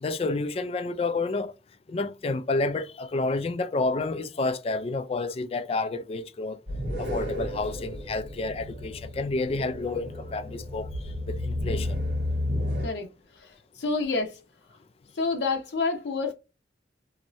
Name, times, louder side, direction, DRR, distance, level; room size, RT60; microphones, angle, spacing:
voice 1, 0.0-1.5 1.9-6.6 7.0-10.9 11.3-12.0, left 3 dB, 35° left, 0.3 m, -29 dB
sound 1, 6.7-12.9, left 1 dB, 80° right, 1.6 m, -32 dB
voice 2, 13.3-14.4 15.2-16.3, left 3 dB, 80° left, 0.6 m, -28 dB
2.8 x 2.6 x 3.0 m
head